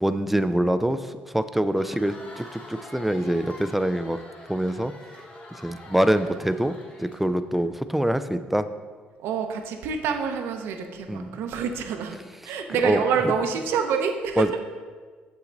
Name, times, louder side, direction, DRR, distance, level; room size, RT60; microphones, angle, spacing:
voice 1, 0.0-4.2 4.5-4.9 5.5-8.7 11.1-11.3 12.8-13.0 14.4-14.5, right 1 dB, 5° right, 11 dB, 0.4 m, -24 dB
Crowd, 1.6-7.6, left 1 dB, 35° left, 1.4 m, -45 dB
voice 2, 9.2-12.2 12.4-14.6, right 6 dB, 80° right, 5 dB, 0.8 m, -27 dB
7.3 x 5.7 x 3.9 m, 1.5 s
cardioid pair, 90°, 4 cm